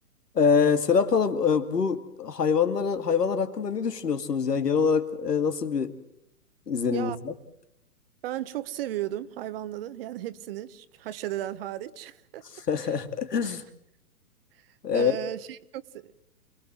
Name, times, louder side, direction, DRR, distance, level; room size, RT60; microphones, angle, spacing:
voice 1, 0.3-6.0 6.7-7.3 12.7-13.6 14.8-15.2, left 6 dB, 85° left, 2.5 m, -25 dB
voice 2, 8.2-12.4 13.4-13.6 14.9-16.1, right 13 dB, 40° right, 1.1 m, -35 dB
27.5 x 19.5 x 7.7 m
hypercardioid pair, 135°, 47 cm